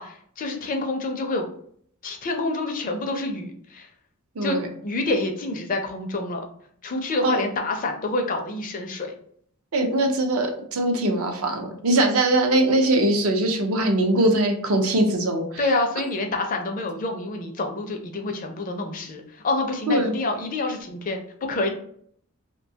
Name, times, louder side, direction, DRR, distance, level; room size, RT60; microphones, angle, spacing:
voice 1, 0.0-1.5 2.0-3.9 4.4-4.6 4.8-6.5 6.8-9.1 15.6-21.7, left 2 dB, 40° left, 3 dB, 0.4 m, -27 dB
voice 2, 4.4-4.7 7.2-7.4 9.7-15.7 19.9-20.1, right 1 dB, 70° right, 4 dB, 0.5 m, -21 dB
2.6 x 2.2 x 2.7 m, 0.62 s
head